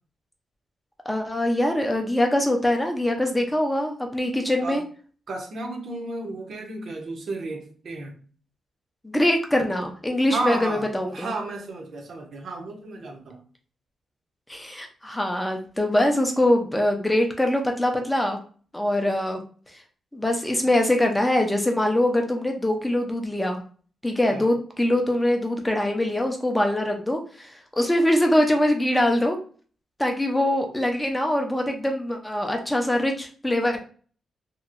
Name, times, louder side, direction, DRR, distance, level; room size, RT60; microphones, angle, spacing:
voice 1, 1.1-4.8 9.0-11.3 14.5-18.4 18.7-19.4 20.1-23.6 24.0-29.4 30.0-33.8, left 1 dB, 10° left, 3 dB, 0.5 m, -23 dB
voice 2, 5.3-8.2 10.3-13.4 24.3-24.5, right 2 dB, 55° right, 2 dB, 0.7 m, -33 dB
2.9 x 2.5 x 2.5 m, 0.41 s
wide cardioid pair, 135°, 0 cm